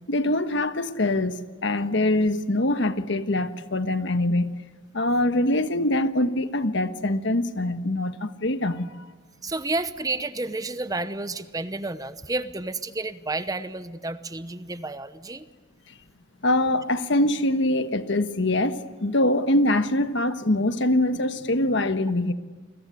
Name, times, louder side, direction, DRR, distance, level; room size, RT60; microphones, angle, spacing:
voice 1, 0.1-4.6 4.9-9.1 16.4-22.3, left 1 dB, 65° left, 1.3 m, -24 dB
voice 2, 9.4-15.5, right 2 dB, 20° right, 0.9 m, -31 dB
29.0 x 21.5 x 9.4 m
head